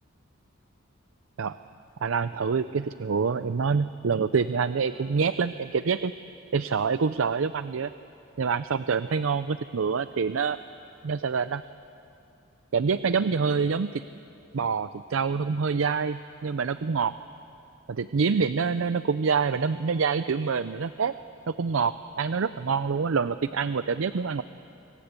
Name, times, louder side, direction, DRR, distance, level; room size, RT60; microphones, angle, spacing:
voice 1, 2.0-6.1 6.5-7.9 8.4-10.6 11.0-11.6 12.7-14.0 14.5-17.1 17.9-21.1 21.5-24.4, right 5 dB, 75° right, 13 dB, 0.5 m, -26 dB
26.0 x 23.5 x 8.3 m, 2.7 s
head